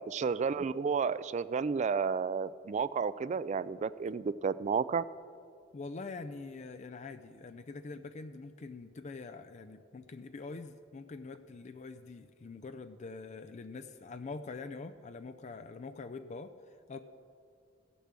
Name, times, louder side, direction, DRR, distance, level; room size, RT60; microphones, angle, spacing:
voice 1, 0.0-5.0, right 5 dB, 35° right, 17 dB, 0.3 m, -32 dB
voice 2, 5.7-17.0, left 3 dB, 35° left, 9 dB, 0.4 m, -44 dB
16.0 x 6.9 x 7.4 m, 2.3 s
head